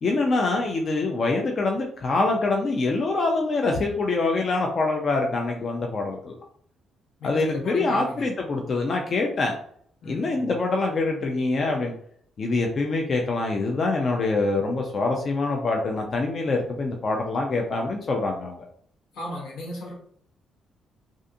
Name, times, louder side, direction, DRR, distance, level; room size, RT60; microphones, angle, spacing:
voice 1, 0.0-6.4 7.2-9.6 10.1-11.9 12.4-18.6, left 3 dB, 45° left, 1 dB, 0.4 m, -25 dB
voice 2, 7.2-8.3 10.0-10.5 19.1-19.9, left 1 dB, 75° left, -1 dB, 0.9 m, -36 dB
2.5 x 2.4 x 2.6 m, 0.62 s
cardioid pair, 90°, 0 cm